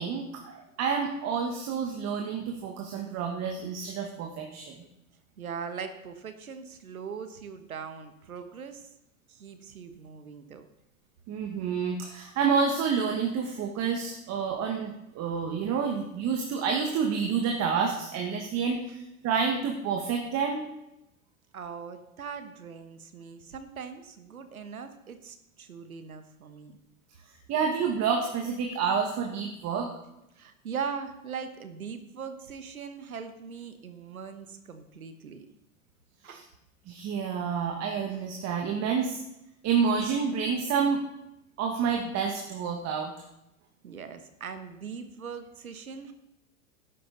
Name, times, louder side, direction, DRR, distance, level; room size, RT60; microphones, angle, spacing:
voice 1, 0.0-4.8 11.3-20.7 27.5-29.9 36.3-36.4 36.9-39.2 39.6-41.0 41.6-43.1, right 6 dB, 40° right, 2 dB, 1.5 m, -29 dB
voice 2, 5.4-8.9 9.3-10.7 21.5-26.7 30.4-35.5 36.2-36.5 43.8-46.1, right 6 dB, 85° right, 9 dB, 1.3 m, -40 dB
12.5 x 10.0 x 3.9 m, 0.88 s
hypercardioid pair, 95°, 42 cm